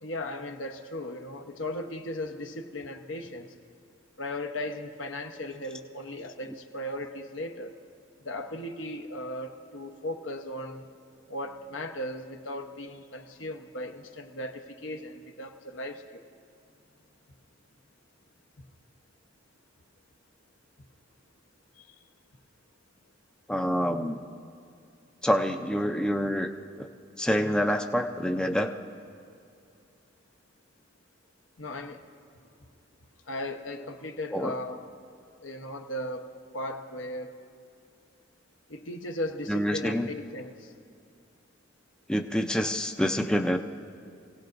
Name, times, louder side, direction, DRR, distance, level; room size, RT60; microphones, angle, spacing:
voice 1, 0.0-3.5 4.2-7.8 8.2-10.9 11.3-16.2 21.8-22.0 31.6-32.0 33.3-34.9 35.4-37.4 38.7-40.7, left 1 dB, 75° left, 5 dB, 1.0 m, -37 dB
voice 2, 23.5-24.2 25.2-26.5 26.8-26.9 27.2-28.7 34.3-34.5 39.5-40.1 42.1-43.6, equal, 5° left, 4 dB, 0.5 m, -27 dB
25.0 x 17.0 x 2.6 m, 2.5 s
head